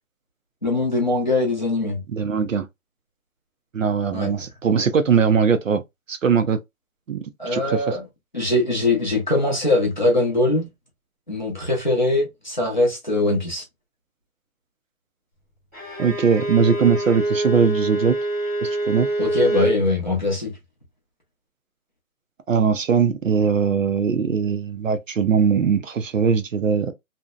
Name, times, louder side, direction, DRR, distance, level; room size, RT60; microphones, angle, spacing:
voice 1, 0.6-2.0 4.1-4.3 7.4-8.0 8.3-10.7 11.3-13.6 19.2-20.5, left 2 dB, 35° left, 0.6 m, -22 dB
voice 2, 2.1-2.7 3.7-5.8 6.1-6.6 7.1-7.2 7.5-8.0 16.0-18.2 18.6-19.1 22.5-26.9, right 6 dB, 60° right, 0.5 m, -20 dB
Bowed string instrument, 15.7-19.8, right 1 dB, 10° right, 1.0 m, -25 dB
2.6 x 2.1 x 2.3 m
hypercardioid pair, 175°, 44 cm